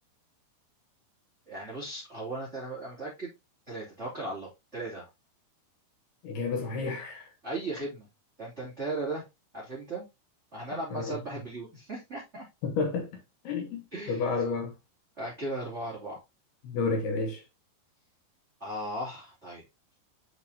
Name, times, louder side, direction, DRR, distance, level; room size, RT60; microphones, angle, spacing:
voice 1, 1.5-3.3 3.7-5.1 7.4-8.1 8.4-9.2 9.5-10.1 10.5-12.5 13.9-14.2 15.2-16.2 18.6-19.6, right 2 dB, 20° right, 2.7 m, -37 dB
voice 2, 6.2-7.3 10.9-11.2 12.6-13.8 14.1-14.7 16.6-17.4, left 4 dB, 70° left, 3.0 m, -31 dB
8.2 x 5.3 x 2.8 m
omnidirectional pair, 5.1 m